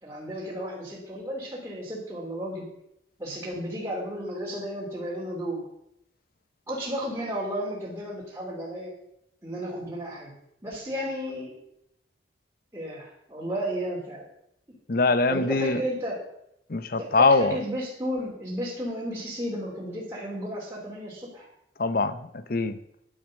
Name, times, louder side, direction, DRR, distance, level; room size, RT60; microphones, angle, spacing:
voice 1, 0.0-2.7 3.2-5.6 6.7-8.9 9.4-10.3 10.6-11.5 12.7-14.3 15.3-16.2 17.0-21.5, equal, 15° right, -6 dB, 3.1 m, -33 dB
voice 2, 14.9-15.8 16.7-17.6 21.8-22.8, left 3 dB, 55° left, 13 dB, 0.8 m, -23 dB
10.5 x 8.6 x 6.4 m, 0.79 s
head